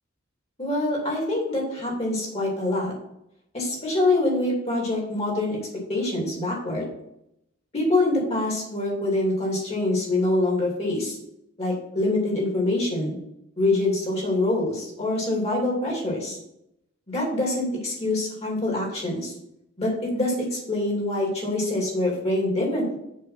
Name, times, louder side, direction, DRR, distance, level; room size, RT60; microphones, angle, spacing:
voice 1, 0.6-2.9 3.5-5.6 5.9-6.9 7.7-11.2 11.6-13.2 13.6-16.4 17.1-19.3 19.8-23.0, left 2 dB, 30° left, -3 dB, 2.8 m, -25 dB
6.7 x 4.8 x 5.8 m, 0.79 s
head